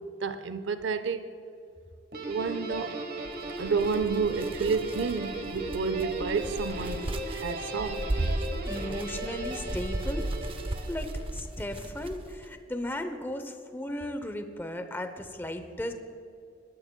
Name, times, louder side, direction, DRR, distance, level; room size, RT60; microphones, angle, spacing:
voice 1, 0.2-1.2 2.2-3.1 3.6-8.3, right 5 dB, 75° right, 0.5 m, -30 dB
Guitar, 2.1-11.4, right 2 dB, 55° right, 1.2 m, -37 dB
sound 1, 3.2-12.5, right 1 dB, 30° right, 0.6 m, -36 dB
voice 2, 8.7-10.3 10.9-15.9, left 1 dB, 10° left, 0.7 m, -36 dB
20.0 x 12.5 x 2.2 m
head